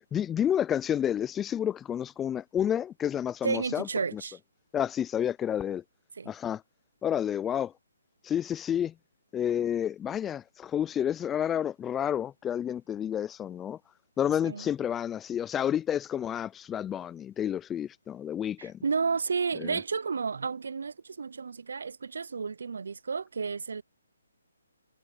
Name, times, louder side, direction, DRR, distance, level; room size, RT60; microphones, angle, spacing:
voice 1, 0.1-4.2 4.7-5.8 6.3-6.6 7.0-7.7 8.2-8.9 9.3-13.8 14.2-18.8 19.6-19.8, left 9 dB, 10° left, 0.4 m, -30 dB
voice 2, 3.4-4.4 6.2-6.3 14.4-14.7 18.6-23.8, right 5 dB, 70° right, 0.6 m, -32 dB
hypercardioid pair, 150°, 0 cm